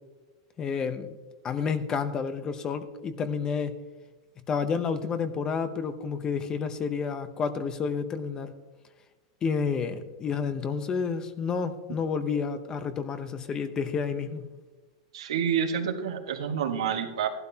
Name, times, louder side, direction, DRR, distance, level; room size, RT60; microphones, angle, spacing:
voice 1, 0.6-1.2 1.4-3.7 4.5-8.5 9.4-14.5, left 5 dB, 25° left, 11 dB, 0.8 m, -30 dB
voice 2, 15.1-17.3, right 8 dB, 90° right, 4 dB, 1.6 m, -28 dB
15.0 x 12.0 x 2.9 m, 1.3 s
supercardioid pair, 140°, 3 cm